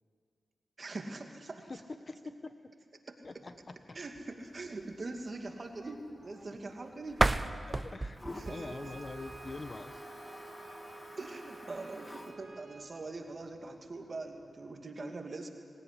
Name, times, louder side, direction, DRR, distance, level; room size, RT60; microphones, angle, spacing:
voice 1, 0.8-1.6 3.9-7.3 8.3-8.6 11.2-15.5, right 2 dB, 55° right, 3 dB, 2.5 m, -42 dB
voice 2, 1.6-2.7 3.2-4.0 7.7-10.0, left 3 dB, 45° left, 11 dB, 1.1 m, -45 dB
Toilet flush, 3.2-14.8, left 1 dB, 25° left, 2.3 m, -52 dB
sound 1, 7.1-10.0, right 2 dB, 30° right, 0.8 m, -33 dB
Brass instrument, 8.4-13.0, right 4 dB, 70° right, 2.1 m, -50 dB
20.0 x 17.5 x 10.0 m, 2.3 s
cardioid pair, 55°, 0 cm